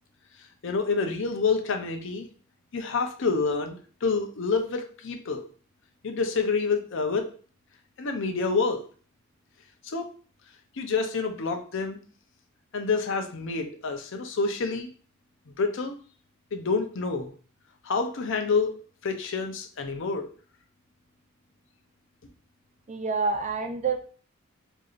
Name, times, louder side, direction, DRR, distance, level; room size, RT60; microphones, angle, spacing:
voice 1, 0.6-2.3 2.7-5.5 6.0-7.3 8.0-8.8 9.8-10.0 10.8-12.0 12.7-14.9 15.6-15.9 16.5-17.3 17.8-18.7 19.0-20.3, left 4 dB, 65° left, 5 dB, 0.6 m, -28 dB
voice 2, 22.9-24.0, right 4 dB, 35° right, 5 dB, 0.5 m, -27 dB
4.6 x 2.6 x 2.5 m, 0.40 s
head